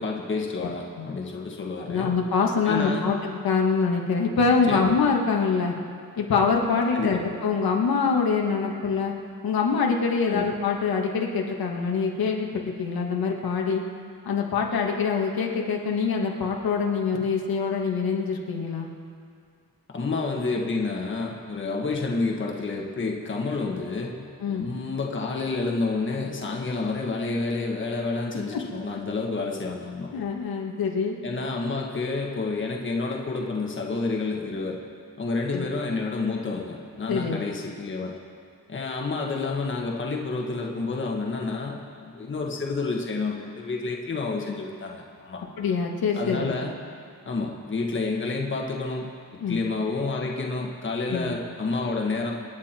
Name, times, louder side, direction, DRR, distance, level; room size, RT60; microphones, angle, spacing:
voice 1, 0.0-2.1 2.6-3.1 4.7-5.0 6.9-7.2 10.3-10.5 19.9-30.1 31.2-34.8 35.2-38.1 38.7-45.4 46.1-46.7 47.2-49.1 49.5-52.3, left 3 dB, 35° left, 0 dB, 1.5 m, -29 dB
voice 2, 1.9-5.7 6.2-9.1 9.4-13.8 14.3-18.9 24.4-24.7 30.1-31.2 35.5-35.7 37.1-37.4 45.6-46.5 49.4-49.6 51.1-51.3, left 5 dB, 85° left, 0 dB, 1.9 m, -25 dB
27.0 x 9.7 x 4.5 m, 2.2 s
wide cardioid pair, 180°, 35 cm